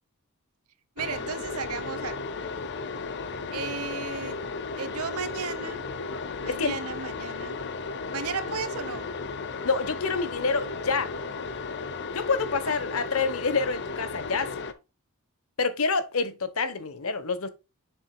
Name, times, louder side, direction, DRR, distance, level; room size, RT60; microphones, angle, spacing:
sound 1, 1.0-14.7, left 4 dB, 50° left, 0.8 m, -35 dB
voice 1, 1.0-2.2 3.5-4.4 4.8-5.9 6.4-7.6 8.1-9.1 12.7-12.8, right 5 dB, 85° right, 1.1 m, -34 dB
voice 2, 6.5-6.8 9.6-11.1 12.1-14.5 15.6-17.5, left 4 dB, 70° left, 1.1 m, -27 dB
7.4 x 7.1 x 2.3 m
head